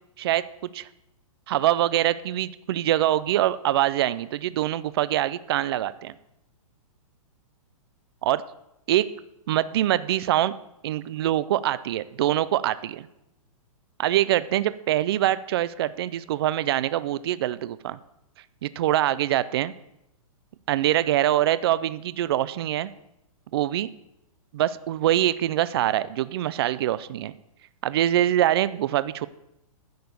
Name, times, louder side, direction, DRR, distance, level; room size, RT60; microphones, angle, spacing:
voice 1, 1.5-6.1 8.2-8.4 8.9-9.1 9.5-10.5 10.8-13.1 14.0-18.0 18.6-19.7 20.7-22.9 23.5-23.9 24.5-27.3 27.8-29.3, right 13 dB, 45° right, 16 dB, 0.4 m, -24 dB
10.0 x 6.7 x 6.9 m, 0.86 s
hypercardioid pair, 160°, 18 cm